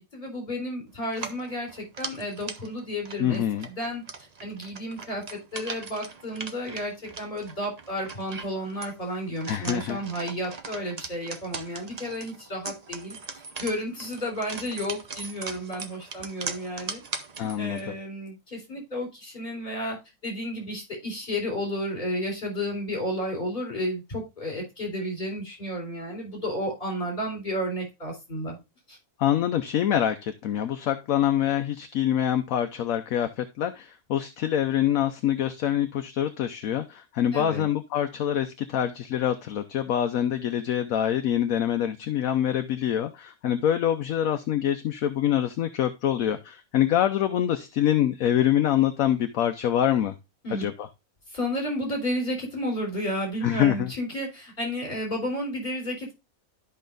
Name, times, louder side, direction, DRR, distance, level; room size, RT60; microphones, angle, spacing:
voice 1, 0.0-3.4 3.7-4.0 4.4-13.2 13.6-17.0 17.4-20.0 20.2-28.6 28.9-29.0 37.3-37.7 50.4-50.7 51.3-56.1, equal, 35° left, 0 dB, 4.1 m, -32 dB
sound 1, 1.1-17.9, right 4 dB, 35° right, 0.7 m, -40 dB
voice 2, 3.2-3.7 9.5-10.0 17.4-17.9 29.2-50.1 50.5-50.9 53.4-53.9, left 10 dB, 70° left, 8 dB, 1.1 m, -25 dB
12.5 x 5.5 x 2.5 m, 0.24 s
omnidirectional pair, 1.5 m